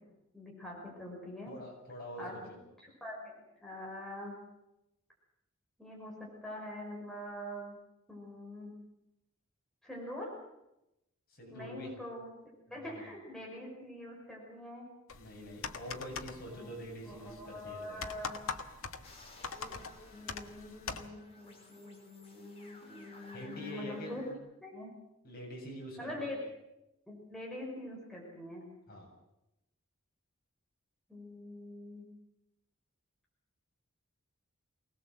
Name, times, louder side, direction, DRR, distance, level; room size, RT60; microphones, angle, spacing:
voice 1, 0.3-1.5 2.2-2.4 2.8-3.3 3.6-4.4 5.8-7.7 8.1-8.7 9.8-10.3 11.5-12.3 12.7-14.9 16.5-16.7 17.1-18.4 20.1-24.2 24.6-24.9 26.0-26.4 27.1-28.7 31.1-32.1, left 1 dB, ahead, -3 dB, 5.8 m, -44 dB
voice 2, 1.5-2.6 11.3-11.9 12.7-13.1 15.1-18.0 23.3-24.4 25.2-26.4 28.9-29.1, equal, 45° left, 0 dB, 7.9 m, -45 dB
sound 1, 15.1-21.1, left 5 dB, 75° left, 1.5 m, -43 dB
sound 2, 19.0-24.3, left 2 dB, 30° left, 4.9 m, -56 dB
24.5 x 19.0 x 7.8 m, 0.89 s
head